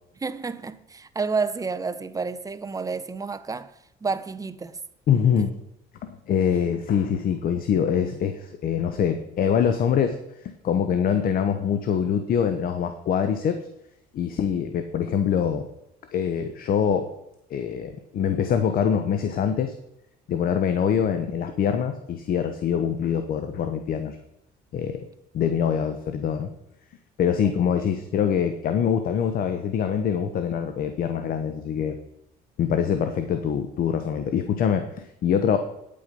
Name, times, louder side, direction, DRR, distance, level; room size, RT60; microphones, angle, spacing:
voice 1, 0.2-3.7 4.0-4.8 5.4-5.5 27.4-27.9, right 4 dB, 20° right, 0.7 m, -30 dB
voice 2, 5.1-5.5 6.0-13.6 14.1-15.7 16.1-17.1 17.5-19.7 20.3-24.2 24.7-25.1 25.3-26.5 27.2-32.0 32.6-35.6, left 8 dB, 60° left, 1.0 m, -24 dB
9.8 x 8.7 x 5.3 m
cardioid pair, 110°, 17 cm